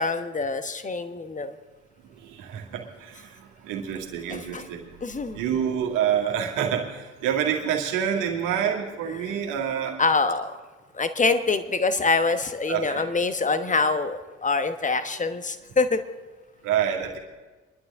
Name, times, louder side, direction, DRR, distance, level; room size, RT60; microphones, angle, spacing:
voice 1, 0.0-1.5 4.3-4.6 5.0-5.4 10.0-10.6 10.9-16.0, left 4 dB, 20° left, 11 dB, 1.1 m, -25 dB
voice 2, 2.1-5.0 5.3-10.0 12.7-13.0 16.6-17.2, right 9 dB, 60° right, 0 dB, 2.2 m, -27 dB
23.0 x 11.5 x 3.6 m, 1.3 s
figure-of-eight pair, 50°, 35 cm